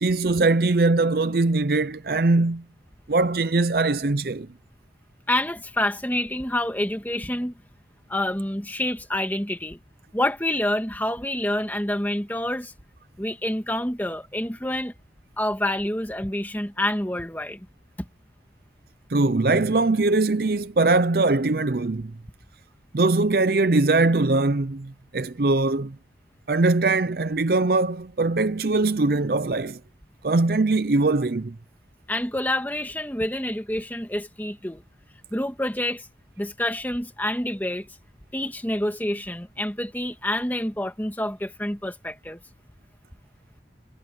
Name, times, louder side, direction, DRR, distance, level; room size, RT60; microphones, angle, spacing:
voice 1, 0.0-2.6 3.1-4.5 19.1-22.1 22.9-25.9 26.5-29.8 30.2-31.5, right 3 dB, 55° right, 0.6 m, -21 dB
voice 2, 5.3-7.6 8.1-9.8 10.1-12.7 13.2-14.9 15.4-17.7 18.0-18.1 32.1-34.8 35.3-36.1 36.4-37.9 38.3-42.4, left 1 dB, 10° left, 2.1 m, -27 dB
head